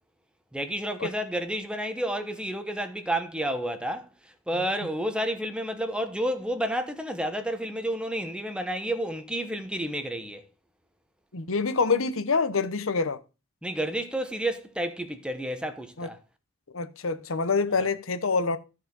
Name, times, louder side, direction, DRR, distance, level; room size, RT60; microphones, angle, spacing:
voice 1, 0.5-4.1 4.5-10.4 13.6-16.2, right 1 dB, 5° right, 1.0 m, -30 dB
voice 2, 11.3-13.2 16.0-16.1 16.7-18.6, left 4 dB, 90° left, 0.9 m, -26 dB
13.5 x 4.8 x 5.3 m
head